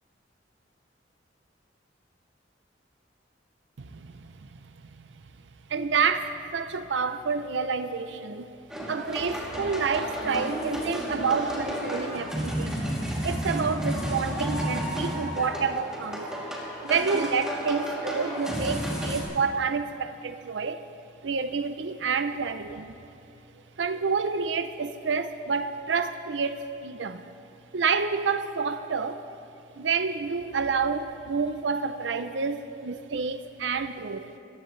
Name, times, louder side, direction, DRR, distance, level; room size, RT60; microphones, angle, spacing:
voice 1, 3.8-4.3 5.7-8.5 8.9-12.8 13.2-16.3 16.8-20.8 21.2-22.9 23.8-27.2 27.7-29.2 29.8-34.4, right 5 dB, 70° right, 10 dB, 0.6 m, -29 dB
sound 1, 8.7-19.2, equal, 5° right, 2.8 m, -32 dB
27.5 x 15.5 x 3.2 m, 2.8 s
head